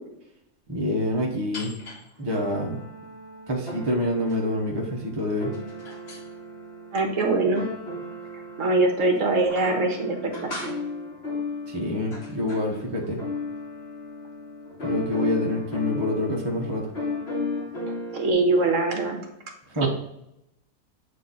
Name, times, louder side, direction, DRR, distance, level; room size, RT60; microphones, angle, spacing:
voice 1, 0.7-1.7 2.2-2.8 3.5-5.5 11.7-13.2 14.8-16.9 19.7-19.9, left 1 dB, 20° right, -1 dB, 0.9 m, -26 dB
sound 1, 1.5-2.0 2.3-18.3, left 3 dB, 45° left, 1.5 m, -35 dB
voice 2, 6.9-7.7 8.6-10.5 17.9-19.2 19.8-19.9, right 2 dB, 60° right, 3 dB, 1.4 m, -23 dB
8.4 x 2.9 x 3.9 m, 0.83 s
omnidirectional pair, 1.6 m